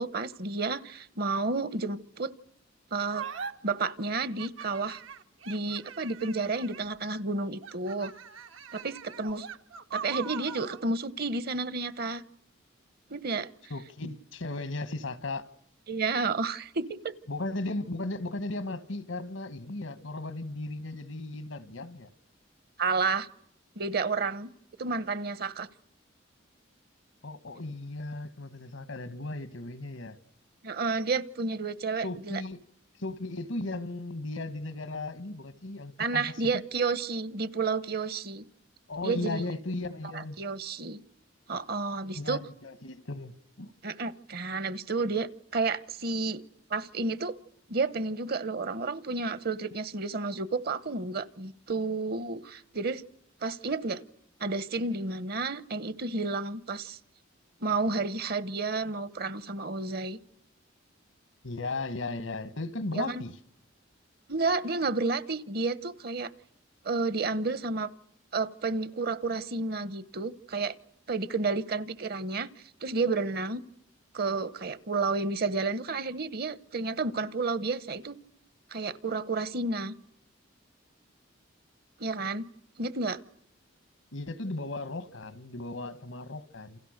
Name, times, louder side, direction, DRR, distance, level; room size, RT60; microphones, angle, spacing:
voice 1, 0.0-2.3 2.9-3.3 3.6-5.0 5.5-8.1 8.7-9.5 9.9-12.2 13.1-13.5 15.9-17.1 22.8-23.3 23.8-24.5 24.8-25.7 30.6-32.4 36.0-38.4 39.0-39.4 40.4-41.0 41.5-42.4 43.8-46.4 46.7-47.4 47.7-53.0 53.4-54.0 54.4-57.0 57.6-60.2 62.9-63.2 64.3-66.3 66.8-67.9 68.3-70.7 71.1-72.5 72.8-73.6 74.1-78.2 78.7-80.0 82.0-82.5 82.8-83.2, right 3 dB, 50° right, 1.0 m, -31 dB
sound 1, 3.1-3.5 4.2-7.0 7.6-10.8, right 7 dB, 85° right, 1.3 m, -41 dB
voice 2, 13.7-15.4 17.3-22.1 27.2-30.2 32.0-32.6 33.0-36.6 38.9-40.4 42.1-43.7 61.4-63.4 84.1-86.8, left 2 dB, 85° left, 1.6 m, -36 dB
29.0 x 28.0 x 6.6 m
head